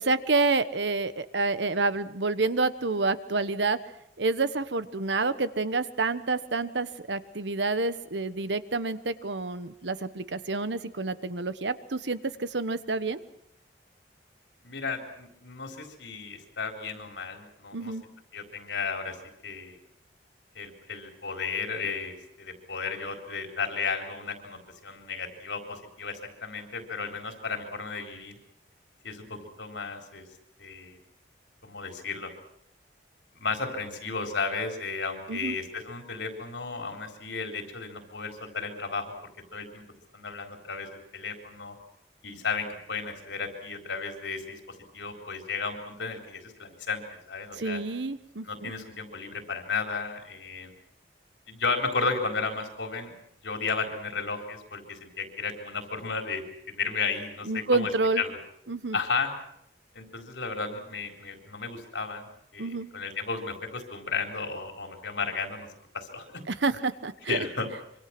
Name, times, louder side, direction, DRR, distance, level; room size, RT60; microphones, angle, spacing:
voice 1, 0.0-3.8 4.2-13.2 17.7-18.0 35.3-35.6 47.6-48.7 57.5-58.2 58.7-59.0 62.6-62.9 66.5-67.5, right 3 dB, 85° right, 13 dB, 1.2 m, -28 dB
voice 2, 14.6-17.9 18.3-19.2 19.4-19.8 20.6-28.4 29.0-30.3 30.6-31.0 31.6-32.3 33.3-39.1 39.5-39.8 40.1-41.8 42.2-44.6 44.9-47.8 48.4-50.7 51.5-53.1 53.4-57.9 58.2-58.4 58.9-59.3 60.0-65.7 65.9-66.4 67.3-67.7, left 4 dB, 90° left, 4 dB, 4.1 m, -34 dB
25.5 x 24.5 x 6.0 m, 0.75 s
head